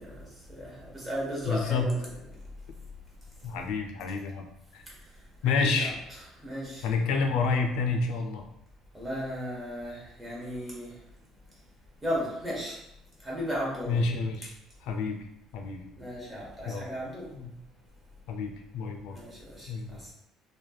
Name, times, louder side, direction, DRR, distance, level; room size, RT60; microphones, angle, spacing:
voice 1, 0.0-2.1 2.3-2.6 3.2-3.6 4.8-6.9 8.9-11.2 11.5-11.7 12.0-12.8 13.2-14.0 14.4-14.5 16.0-17.4 19.1-20.1, equal, 15° right, -5 dB, 1.1 m, -36 dB
voice 2, 1.4-1.9 3.4-4.5 4.7-4.8 5.4-5.9 6.8-8.4 13.9-14.5 14.8-15.2 15.5-15.9 16.6-16.8 17.3-17.5 18.3-19.2 19.7-20.0, left 4 dB, 80° left, 3 dB, 0.4 m, -29 dB
3.2 x 2.2 x 2.3 m, 0.81 s
cardioid pair, 115°, 0 cm